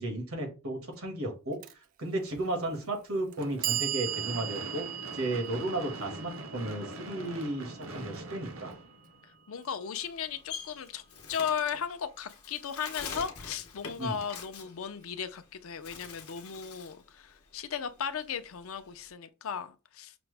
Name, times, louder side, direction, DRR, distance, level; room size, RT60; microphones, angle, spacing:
voice 1, 0.0-1.6 2.0-4.9 5.1-8.7 14.0-14.2, right 1 dB, 85° right, 1.7 m, -34 dB
Clock, 1.6-1.7 2.7-2.8 3.3-9.4, right 12 dB, 40° right, 0.3 m, -38 dB
Gunshot gunfire / Fireworks, 3.4-9.6, right 2 dB, 70° right, 0.8 m, -43 dB
voice 2, 9.5-11.0 11.3-20.1, left 7 dB, 70° left, 0.5 m, -36 dB
Bird, 10.0-15.4 15.8-17.0 17.4-19.1, left 6 dB, 90° left, 0.8 m, -44 dB
5.9 x 2.1 x 3.3 m
head